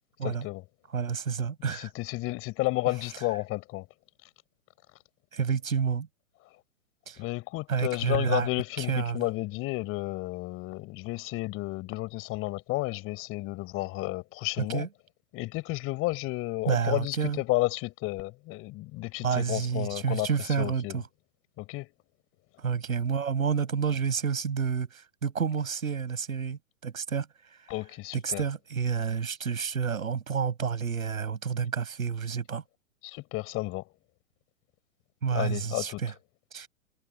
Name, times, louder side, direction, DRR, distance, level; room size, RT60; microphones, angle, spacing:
voice 1, 0.2-0.6 1.7-3.9 7.2-14.9 15.3-21.0 21.6-21.9 27.7-28.4 33.0-33.9 35.3-36.0, left 20 dB, 30° left, 4.3 m, -32 dB
voice 2, 0.9-1.9 5.3-6.1 7.1-7.2 7.7-8.5 8.8-9.2 14.7-14.9 16.7-17.4 19.2-21.0 22.6-27.3 27.6-27.7 28.1-32.6 35.2-36.1 36.5-36.7, right 6 dB, 75° right, 7.4 m, -29 dB
hypercardioid pair, 115°, 41 cm